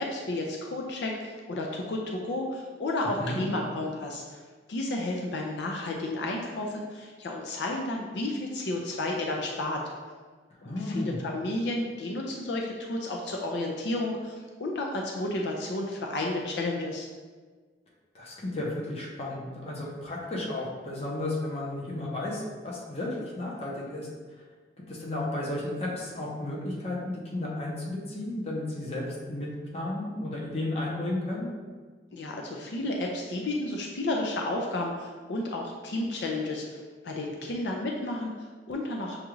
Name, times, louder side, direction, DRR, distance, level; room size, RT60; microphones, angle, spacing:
voice 1, 0.0-4.4 4.7-9.8 10.6-17.1 32.1-36.8 37.0-39.2, left 2 dB, 80° left, 0 dB, 0.5 m, -32 dB
voice 2, 10.6-11.2 18.1-24.1 24.9-31.5, left 1 dB, 35° left, -4 dB, 0.8 m, -33 dB
6.4 x 2.4 x 3.1 m, 1.5 s
head